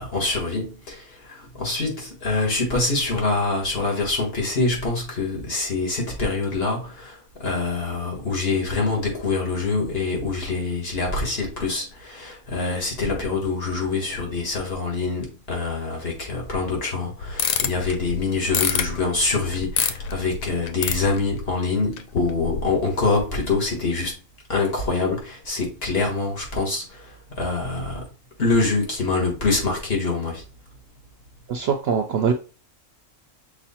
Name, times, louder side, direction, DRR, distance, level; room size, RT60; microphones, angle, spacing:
voice 1, 0.0-24.1 24.5-28.0 28.4-30.4, left 3 dB, 50° left, 1.6 m, -25 dB
sound 1, 17.2-21.6 22.0-22.9 23.3-23.5, left 7 dB, 80° left, 1.0 m, -27 dB
voice 2, 31.5-32.3, right 7 dB, 65° right, 0.7 m, -22 dB
6.0 x 2.1 x 4.2 m
omnidirectional pair, 1.4 m